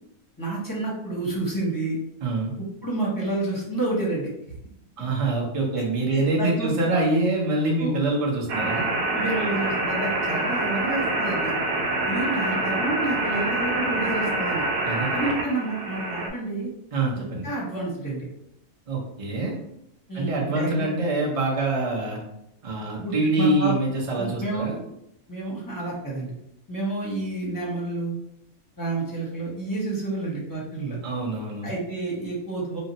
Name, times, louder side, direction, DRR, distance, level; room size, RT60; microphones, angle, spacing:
voice 1, 0.4-2.0 2.8-4.3 6.1-6.8 7.8-7.9 9.1-11.5 12.1-14.7 15.1-16.7 17.4-18.2 20.1-20.9 23.0-23.7 24.2-24.6 25.3-26.3 26.7-28.2 28.8-31.0 31.6-32.8, right 2 dB, 20° left, -5 dB, 0.6 m, -29 dB
voice 2, 2.2-2.5 5.0-8.9 14.8-15.2 16.9-17.5 18.9-19.6 20.1-22.2 22.6-24.8 31.0-31.7, right 2 dB, 40° right, -2 dB, 0.5 m, -25 dB
sound 1, 8.5-16.3, right 2 dB, 90° right, 1.1 m, -26 dB
2.8 x 2.1 x 3.9 m, 0.79 s
omnidirectional pair, 1.6 m